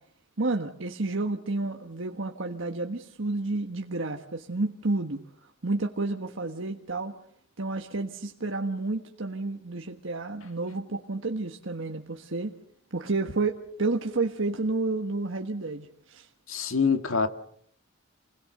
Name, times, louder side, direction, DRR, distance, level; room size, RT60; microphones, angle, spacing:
voice 1, 0.4-5.2 5.6-7.1 7.6-12.5 12.9-16.3, right 3 dB, 65° right, 1.5 m, -30 dB
voice 2, 16.5-17.3, left 5 dB, 75° left, 2.0 m, -25 dB
29.0 x 20.5 x 6.7 m
head